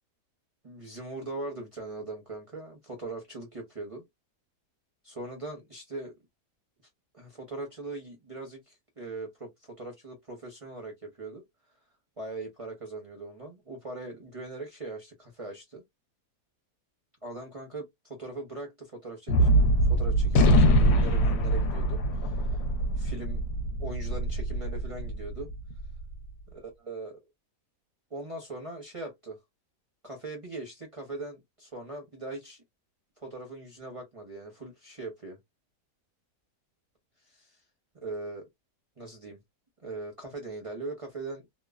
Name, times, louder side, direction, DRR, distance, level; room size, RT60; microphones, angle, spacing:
voice 1, 0.6-4.0 5.0-6.1 7.1-11.4 12.2-15.8 17.2-19.5 19.9-22.6 23.0-23.4 23.8-25.5 26.5-27.2 28.1-29.4 30.0-32.6 33.2-35.4 37.3-37.6 37.9-38.5 39.0-39.4 39.8-41.5, right 2 dB, 45° right, 0.4 m, -40 dB
Gunshot gunfire, 19.3-25.8, equal, 75° left, 1.1 m, -23 dB
2.9 x 2.0 x 2.3 m
omnidirectional pair, 1.8 m